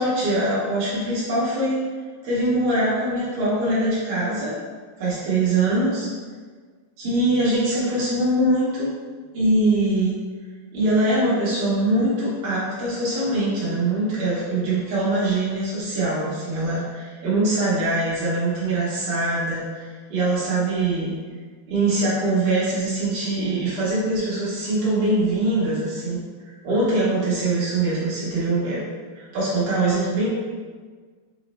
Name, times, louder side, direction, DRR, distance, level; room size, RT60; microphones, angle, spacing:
voice 1, 0.0-1.8 2.2-4.6 5.0-6.1 7.0-9.0 9.3-10.2 10.7-21.2 21.7-26.2 26.6-28.8 29.1-30.3, right 2 dB, 65° right, -9 dB, 2.3 m, -23 dB
8.1 x 2.8 x 4.2 m, 1.5 s
omnidirectional pair, 5.8 m